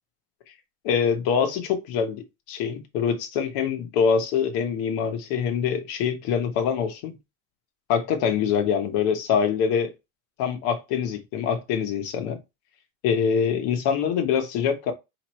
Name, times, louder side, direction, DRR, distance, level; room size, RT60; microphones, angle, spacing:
voice 1, 0.8-7.2 7.9-9.9 10.4-12.4 13.0-14.9, left 7 dB, 60° left, 1.2 m, -24 dB
4.9 x 3.1 x 3.1 m
cardioid pair, 150°, 41 cm